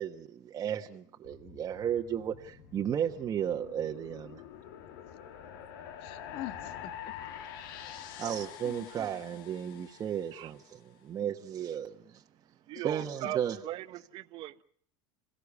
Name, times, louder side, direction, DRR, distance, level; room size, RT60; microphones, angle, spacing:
voice 1, 0.0-4.4 8.2-12.2 12.7-13.6, right 9 dB, 30° right, 1.3 m, -34 dB
sound 1, 1.2-10.6, left 9 dB, 80° left, 2.5 m, -46 dB
voice 2, 6.0-7.1 7.8-8.2 8.6-8.9 12.7-12.9 13.2-13.3, left 15 dB, 55° left, 1.7 m, -45 dB
voice 3, 12.7-13.4 13.6-13.8 14.1-14.6, right 15 dB, 50° right, 1.1 m, -37 dB
27.0 x 16.5 x 8.4 m
supercardioid pair, 130°, 11 cm